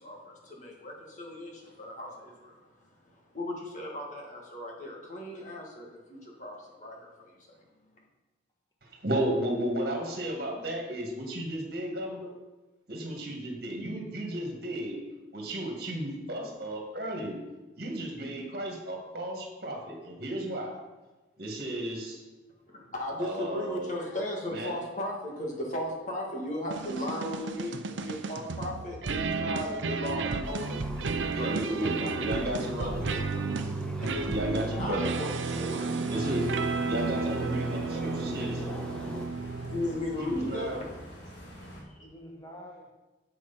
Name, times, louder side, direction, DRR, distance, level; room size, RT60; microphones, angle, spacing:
voice 1, 0.0-7.6 22.7-33.5 34.0-36.4 39.5-40.7 41.9-42.1, left 1 dB, 40° left, -2 dB, 1.9 m, -37 dB
voice 2, 8.8-12.3 12.9-15.0 15.3-17.4 17.8-20.8 21.4-22.2 23.2-24.0 24.5-24.7 31.3-33.0 34.1-35.1 36.0-36.5 36.8-38.6 40.2-40.8, right 1 dB, 50° right, 1 dB, 2.0 m, -34 dB
sound 1, 26.7-40.2, right 4 dB, 75° right, 0.5 m, -33 dB
sound 2, 30.4-39.3, equal, 5° left, 0.6 m, -41 dB
voice 3, 34.1-35.0 37.2-37.4 37.9-39.0 42.0-42.9, equal, 20° left, 1 dB, 1.3 m, -46 dB
sound 3, 36.3-41.8, equal, 65° left, 2.1 m, -45 dB
7.9 x 6.3 x 5.8 m, 1.1 s
head